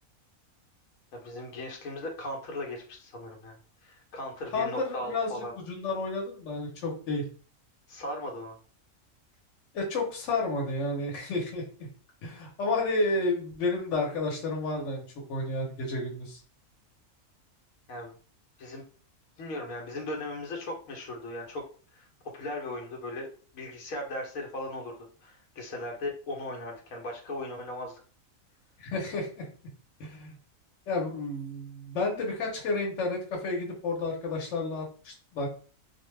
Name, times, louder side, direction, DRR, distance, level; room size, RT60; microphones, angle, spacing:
voice 1, 1.1-3.5 3.8-5.5 7.9-8.6 17.9-18.1 18.6-18.8 19.4-21.6 21.9-22.1 22.3-24.9 25.2-28.0, left 1 dB, 85° left, 1 dB, 1.1 m, -37 dB
voice 2, 4.5-7.2 9.7-11.9 12.2-16.4 28.8-29.5 30.0-30.3 30.9-35.5, left 2 dB, 65° left, 0 dB, 1.1 m, -31 dB
2.4 x 2.2 x 3.1 m, 0.40 s
omnidirectional pair, 1.4 m